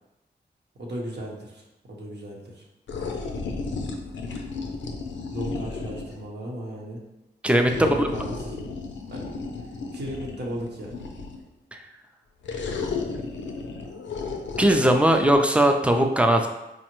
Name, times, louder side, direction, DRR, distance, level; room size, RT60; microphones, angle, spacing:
voice 1, 0.8-2.7 5.3-7.0 7.8-8.7 9.1-9.2 9.9-10.9, equal, 65° right, -2 dB, 0.9 m, -35 dB
sound 1, 2.9-6.2 7.7-11.5 12.4-15.4, left 4 dB, 85° left, 0.4 m, -34 dB
voice 2, 7.4-8.1 11.7-11.8 14.6-16.5, right 1 dB, 5° right, 5 dB, 0.4 m, -19 dB
4.8 x 2.1 x 3.0 m, 0.95 s
cardioid pair, 45°, 19 cm